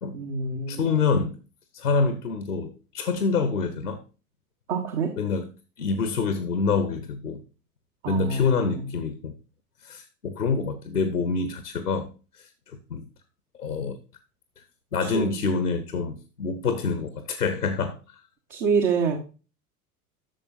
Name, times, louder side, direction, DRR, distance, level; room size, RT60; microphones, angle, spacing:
voice 1, 0.1-0.9 4.7-5.1 8.0-8.9 15.0-15.3 18.5-19.2, right 5 dB, 60° right, 2 dB, 1.7 m, -26 dB
voice 2, 0.7-1.4 1.7-4.0 5.2-5.5 5.8-7.4 8.1-9.3 9.8-12.1 12.9-13.0 13.6-14.0 14.9-17.9, left 4 dB, 85° left, 10 dB, 0.9 m, -26 dB
11.5 x 6.7 x 2.6 m, 0.34 s
figure-of-eight pair, 80°, 44 cm